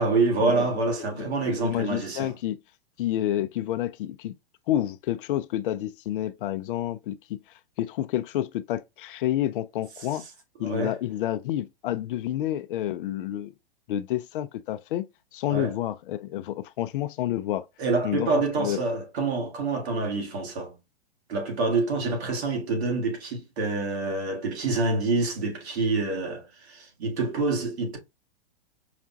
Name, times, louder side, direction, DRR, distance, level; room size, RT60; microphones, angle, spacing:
voice 1, 0.0-2.3 10.6-10.9 15.5-15.7 17.8-20.7 21.3-28.0, right 3 dB, 80° right, 1.7 m, -27 dB
voice 2, 1.0-2.6 3.0-4.3 4.7-7.4 7.8-10.2 10.6-13.5 13.9-15.1 15.3-17.6 18.0-18.8, left 12 dB, 55° left, 0.4 m, -29 dB
4.9 x 2.2 x 2.5 m
hypercardioid pair, 125°, 32 cm